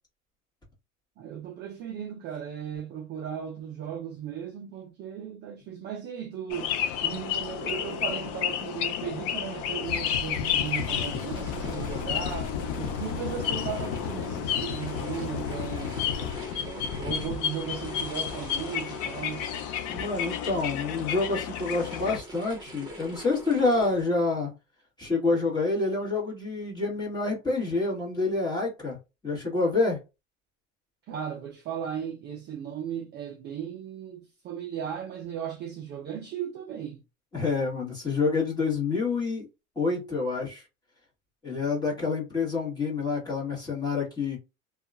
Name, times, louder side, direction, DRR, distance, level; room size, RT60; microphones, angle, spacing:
voice 1, 1.2-6.7 7.0-16.0 16.5-19.5 31.1-37.0, right 9 dB, 30° right, 0.4 m, -36 dB
sound 1, 6.5-22.2, left 9 dB, 40° left, 0.4 m, -32 dB
sound 2, 9.9-16.4, left 7 dB, 80° left, 0.9 m, -35 dB
sound 3, 10.7-24.0, right 2 dB, 10° right, 1.1 m, -46 dB
voice 2, 19.9-24.5 25.0-29.0 29.2-30.0 37.3-39.5 39.7-40.6 41.4-44.4, left 3 dB, 10° left, 1.4 m, -27 dB
2.7 x 2.3 x 2.5 m
supercardioid pair, 135°, 38 cm